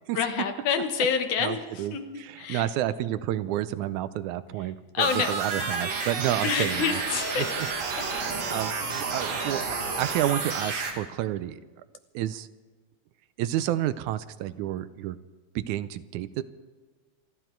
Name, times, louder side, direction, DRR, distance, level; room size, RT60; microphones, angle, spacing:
voice 1, 0.1-2.1 2.4-2.7 4.9-5.3 6.4-7.5 7.9-8.0 8.4-8.7, left 6 dB, 75° left, 6 dB, 2.7 m, -28 dB
voice 2, 1.4-7.0 7.4-7.5 8.1-11.6 12.1-12.5 13.4-15.2 15.6-16.4, right 13 dB, 80° right, 14 dB, 2.0 m, -30 dB
sound 1, 5.0-10.9, right 4 dB, 60° right, 3.0 m, -30 dB
27.0 x 11.5 x 4.5 m, 1.4 s
omnidirectional pair, 3.5 m